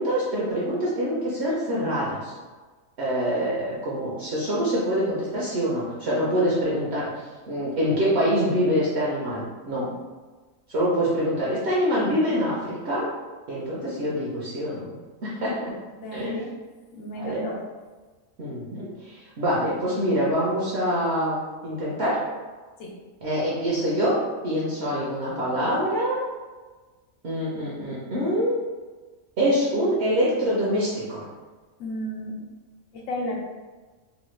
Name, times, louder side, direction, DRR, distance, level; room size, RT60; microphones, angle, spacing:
voice 1, 0.0-2.3 3.0-7.1 7.5-9.9 10.7-13.1 13.5-14.9 15.2-15.7 16.1-16.4 17.1-17.4 18.4-22.2 23.2-24.2 24.4-26.2 27.2-28.6 29.4-31.2, equal, 60° right, -6 dB, 0.9 m, -25 dB
voice 2, 15.9-16.5 16.9-17.6 22.8-23.0 31.8-32.4 32.9-33.4, equal, 75° left, -1 dB, 1.0 m, -33 dB
3.1 x 2.1 x 3.1 m, 1.3 s
omnidirectional pair, 1.5 m